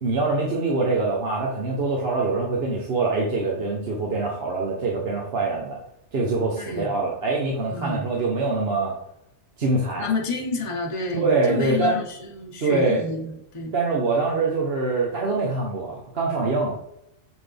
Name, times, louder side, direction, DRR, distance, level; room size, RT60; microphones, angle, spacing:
voice 1, 0.0-5.8 6.1-8.9 9.6-10.1 11.1-12.0 12.6-13.0 13.7-16.8, right 3 dB, 50° right, -3 dB, 1.1 m, -24 dB
voice 2, 6.6-6.9 7.7-8.0 10.0-13.7, left 3 dB, 25° left, 0 dB, 0.9 m, -29 dB
7.2 x 4.0 x 3.4 m, 0.78 s
omnidirectional pair, 1.4 m